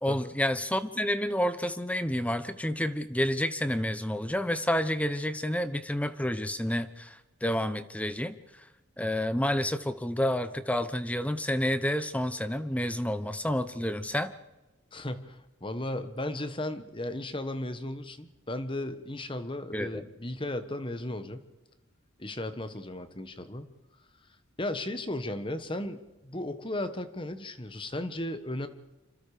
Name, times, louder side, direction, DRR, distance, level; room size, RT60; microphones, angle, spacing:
voice 1, 0.0-8.7 9.0-14.3 19.7-20.0, left 1 dB, 5° left, 11 dB, 0.9 m, -29 dB
voice 2, 14.9-21.4 22.2-23.7 24.6-28.7, left 1 dB, 25° left, 10 dB, 1.4 m, -35 dB
26.5 x 26.5 x 5.1 m, 1.1 s
head